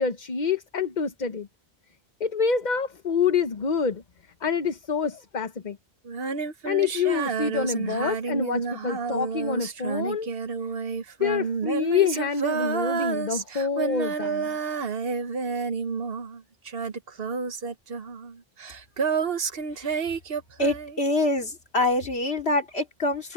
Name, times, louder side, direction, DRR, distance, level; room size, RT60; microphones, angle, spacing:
voice 1, 0.0-1.5 2.2-4.0 4.4-5.8 6.6-10.3 11.2-14.6, left 6 dB, 45° left, 1.1 m, -26 dB
Female singing, 6.0-16.4 16.6-21.1, right 5 dB, 70° right, 1.3 m, -30 dB
voice 2, 20.6-23.3, left 1 dB, 85° left, 2.7 m, -25 dB
omnidirectional pair, 1.0 m